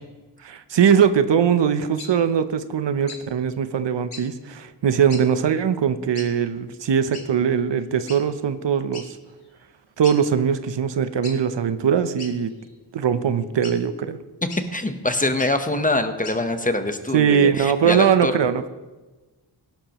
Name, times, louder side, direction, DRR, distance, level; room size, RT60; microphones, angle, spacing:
voice 1, 0.4-9.1 10.0-12.5 12.9-14.2 17.1-18.7, right 7 dB, 80° right, 11 dB, 0.8 m, -21 dB
sound 1, 2.0-2.1 3.1-3.2 4.1-4.3 5.1-5.2 6.1-6.3 7.1-7.3 8.1-8.2 8.9-9.1 9.5-9.6 10.0-10.2 11.2-11.4 12.2-12.7 13.6-13.8 14.5-14.6 15.3-15.5 16.2-16.4, left 4 dB, 60° left, 2.1 m, -38 dB
voice 2, 14.7-18.3, left 2 dB, 20° left, 7 dB, 0.9 m, -24 dB
17.0 x 11.5 x 3.0 m, 1.2 s
wide cardioid pair, 95°, 43 cm